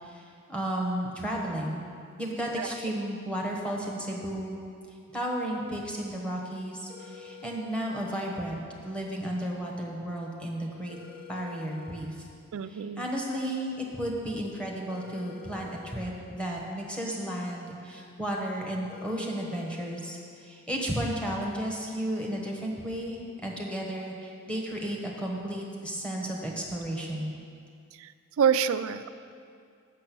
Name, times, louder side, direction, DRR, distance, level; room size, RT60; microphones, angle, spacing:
voice 1, 0.0-1.8 2.2-4.6 5.1-11.0 11.3-12.1 12.7-27.3, right 1 dB, 5° left, -2 dB, 1.1 m, -33 dB
sound 1, 6.9-7.9 10.9-11.9 14.9-15.9 18.9-19.9, left 8 dB, 45° left, 1.0 m, -48 dB
voice 2, 12.5-13.0 28.0-28.1 28.4-29.1, right 7 dB, 70° right, 12 dB, 0.3 m, -26 dB
7.5 x 6.7 x 6.1 m, 2.4 s
head